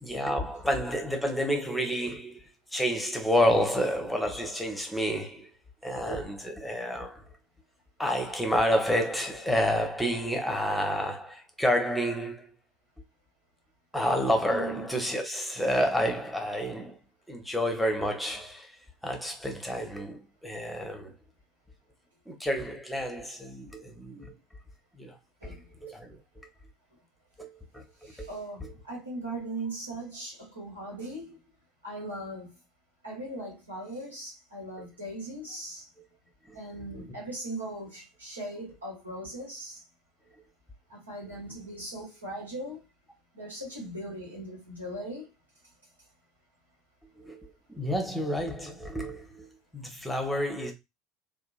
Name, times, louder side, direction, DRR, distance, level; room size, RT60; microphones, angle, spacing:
voice 1, 0.0-5.5 5.8-7.2 8.0-12.5 13.9-17.0 17.3-18.8 19.0-21.1 22.3-24.3 25.0-25.2 25.4-26.2 27.4-28.3 28.6-28.7 34.8-34.9 36.5-36.6 36.9-37.1 47.2-50.7, equal, 5° left, 0.8 m, -29 dB
voice 2, 14.5-14.8 25.4-25.6 28.0-31.4 31.8-32.5 33.0-35.9 36.5-39.8 40.9-42.8 43.3-45.3, right 1 dB, 80° right, 1.4 m, -39 dB
2.8 x 2.3 x 2.3 m
figure-of-eight pair, 70°, 0 cm